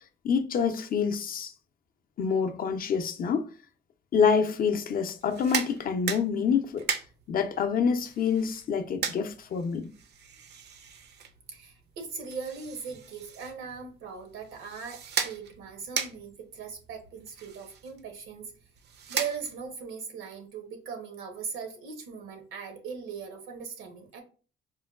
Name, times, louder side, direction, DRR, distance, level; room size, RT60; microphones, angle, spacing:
voice 1, 0.2-1.5 2.2-3.5 4.1-6.9 7.3-9.9, left 6 dB, 45° left, 0.5 m, -27 dB
sound 1, 5.2-19.8, right 7 dB, 60° right, 0.4 m, -38 dB
voice 2, 11.5-18.5 19.1-24.2, right 6 dB, 85° right, 0.8 m, -39 dB
4.4 x 2.2 x 2.3 m
cardioid pair, 90°, 20 cm